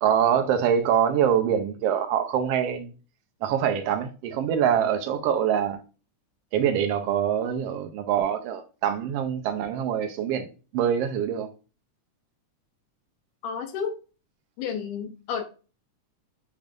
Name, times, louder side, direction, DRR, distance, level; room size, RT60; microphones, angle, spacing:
voice 1, 0.0-2.9 3.4-5.8 6.5-10.5 10.7-11.5, right 9 dB, 80° right, 1.4 m, -24 dB
voice 2, 13.4-14.0 14.6-15.4, left 7 dB, 85° left, 2.3 m, -31 dB
6.4 x 3.4 x 2.4 m
omnidirectional pair, 3.5 m